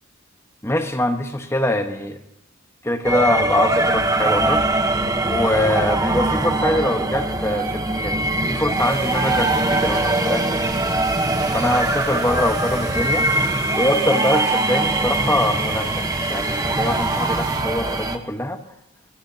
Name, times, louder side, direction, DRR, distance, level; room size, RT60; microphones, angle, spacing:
voice 1, 0.6-2.2 2.8-4.8 5.2-10.7 11.5-13.3 13.8-18.6, left 1 dB, 15° left, 6 dB, 1.2 m, -23 dB
sound 1, 3.0-18.2, right 2 dB, 15° right, 1.0 m, -22 dB
sound 2, 8.8-17.6, right 5 dB, 50° right, 5.5 m, -38 dB
25.0 x 16.0 x 2.8 m, 0.81 s
head